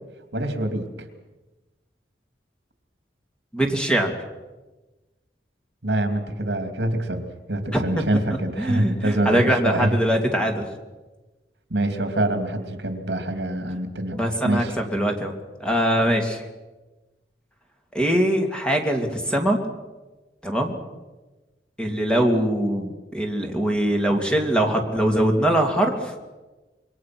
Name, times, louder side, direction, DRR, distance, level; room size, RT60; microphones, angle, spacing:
voice 1, 0.3-1.1 5.8-7.2 7.5-10.0 11.7-14.2 14.4-14.7, right 1 dB, 70° right, 6 dB, 2.8 m, -25 dB
voice 2, 3.5-4.1 7.7-8.2 8.6-10.6 14.1-15.3 15.6-16.4 17.9-19.6 20.4-20.7 21.8-26.1, right 1 dB, 5° left, 2 dB, 2.7 m, -22 dB
27.0 x 22.5 x 6.1 m, 1.2 s
head